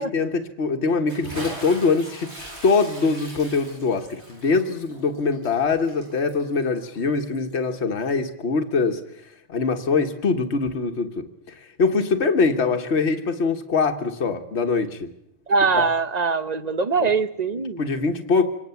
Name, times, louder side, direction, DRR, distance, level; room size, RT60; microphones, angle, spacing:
voice 1, 0.0-2.3 2.6-9.0 9.5-15.1 15.7-15.9 17.0-17.1 17.8-18.4, left 4 dB, 65° left, 5 dB, 1.7 m, -23 dB
Bathtub (filling or washing) / Splash splatter, 1.1-7.6, right 1 dB, 60° right, 7.5 m, -40 dB
voice 2, 15.5-17.8, right 4 dB, 35° right, 11 dB, 1.1 m, -22 dB
25.5 x 19.0 x 7.1 m, 0.77 s
omnidirectional pair, 1.3 m